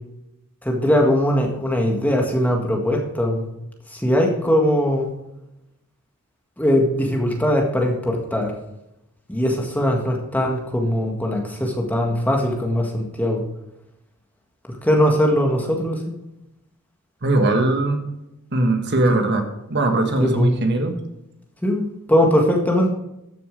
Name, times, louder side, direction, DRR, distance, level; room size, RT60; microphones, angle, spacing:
voice 1, 0.6-3.5 3.9-5.1 6.6-8.5 9.3-13.5 14.8-16.1 19.1-19.2 20.2-20.5 21.6-22.9, equal, 5° left, 1 dB, 1.7 m, -20 dB
voice 2, 17.2-18.0 18.5-20.9, right 2 dB, 50° right, 5 dB, 1.5 m, -20 dB
13.5 x 6.8 x 5.2 m, 0.88 s
head